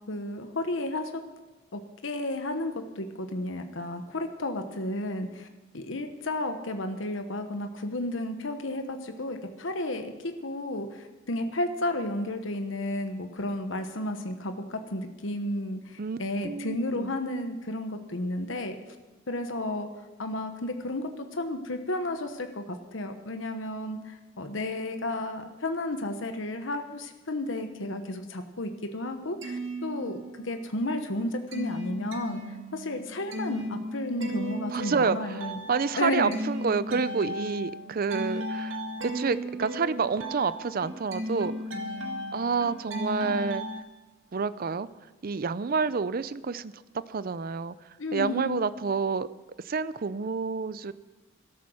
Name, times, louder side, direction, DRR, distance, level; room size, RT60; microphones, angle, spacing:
voice 1, 0.1-1.2 1.7-5.5 5.7-18.8 19.3-30.2 30.4-32.4 32.7-35.6 36.0-36.4 48.0-48.6, left 1 dB, 70° left, 6 dB, 1.2 m, -32 dB
voice 2, 16.0-17.2 34.7-41.5 42.3-43.7 44.3-44.9 45.2-46.8 47.1-49.3 49.6-50.9, right 5 dB, 45° right, 16 dB, 0.5 m, -29 dB
sound 1, 29.2-30.6 31.0-43.8, equal, 75° right, 1.9 m, -36 dB
13.0 x 13.0 x 6.3 m, 1.2 s
head